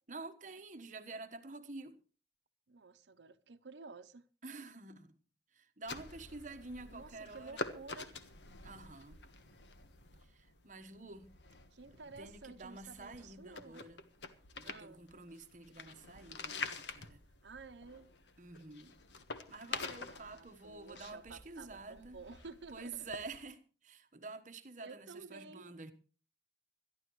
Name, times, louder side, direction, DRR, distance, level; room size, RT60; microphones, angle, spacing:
voice 1, 0.1-2.0 4.4-5.1 5.5-7.6 8.6-9.2 10.2-11.3 12.2-14.1 14.6-17.2 18.4-19.0 19.5-22.2 22.7-25.9, right 3 dB, 45° right, 1.3 m, -49 dB
voice 2, 2.7-4.2 6.8-8.2 11.7-13.9 14.6-15.0 17.4-18.1 19.8-23.1 24.8-25.7, right 4 dB, 90° right, 0.8 m, -52 dB
sound 1, 5.9-23.4, left 4 dB, 90° left, 1.4 m, -48 dB
21.5 x 13.5 x 3.2 m
head